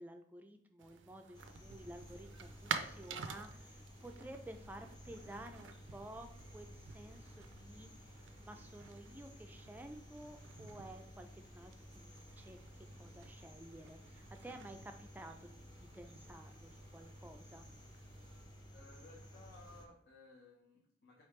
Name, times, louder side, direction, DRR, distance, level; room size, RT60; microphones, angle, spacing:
voice 1, 0.0-6.3 6.5-17.7, right 1 dB, 10° right, 5 dB, 0.3 m, -53 dB
sound 1, 0.8-18.4, right 6 dB, 80° right, 0.4 m, -50 dB
sound 2, 1.3-19.9, equal, 20° left, 0.7 m, -55 dB
voice 2, 18.7-21.2, left 2 dB, 65° left, -3 dB, 0.8 m, -59 dB
4.7 x 3.3 x 3.2 m, 0.71 s
head